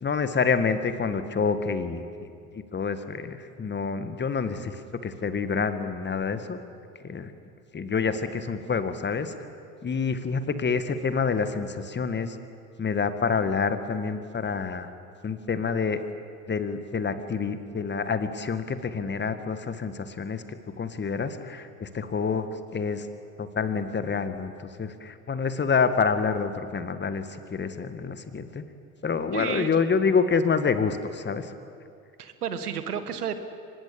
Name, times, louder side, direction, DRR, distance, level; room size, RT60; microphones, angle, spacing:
voice 1, 0.0-2.1 2.5-6.6 7.0-7.3 7.7-9.3 9.8-12.4 12.8-14.9 15.2-16.0 16.5-20.4 20.8-23.1 23.4-27.2 27.5-28.6 29.0-31.5, left 5 dB, 25° left, 10 dB, 1.8 m, -27 dB
voice 2, 29.3-29.8 32.2-33.4, right 8 dB, 85° right, 10 dB, 1.7 m, -32 dB
24.5 x 20.5 x 8.7 m, 2.4 s
hypercardioid pair, 80°, 45 cm